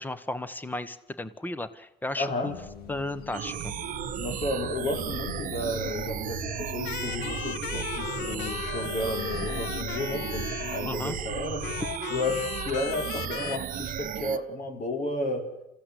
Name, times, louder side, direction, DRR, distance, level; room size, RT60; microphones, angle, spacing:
voice 1, 0.0-2.5 2.9-3.7 10.8-11.2, left 2 dB, 10° left, 14 dB, 1.4 m, -34 dB
voice 2, 2.2-2.6 4.2-15.5, left 2 dB, 50° left, 5 dB, 4.8 m, -32 dB
sound 1, 2.5-11.9, left 6 dB, 65° left, 2.2 m, -42 dB
sound 2, 3.3-14.4, right 10 dB, 55° right, 1.0 m, -35 dB
sound 3, 6.8-11.1 11.6-13.6, left 14 dB, 90° left, 0.8 m, -37 dB
27.5 x 15.5 x 8.4 m, 0.88 s
cardioid pair, 110°, 17 cm